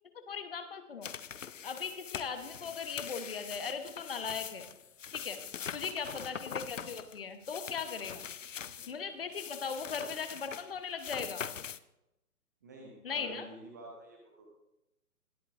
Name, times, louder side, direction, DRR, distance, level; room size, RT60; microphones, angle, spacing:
voice 1, 0.3-1.1 1.6-4.7 5.1-5.4 5.7-8.2 8.9-11.4 13.0-13.4, left 6 dB, 40° left, 8 dB, 1.1 m, -38 dB
sound 1, 1.0-8.9 9.3-11.8, left 8 dB, 55° left, 0.5 m, -43 dB
voice 2, 6.0-6.3 8.6-9.0 12.6-14.5, right 1 dB, 10° right, -1 dB, 0.7 m, -50 dB
21.0 x 8.5 x 2.6 m, 0.90 s
figure-of-eight pair, 135°, 46 cm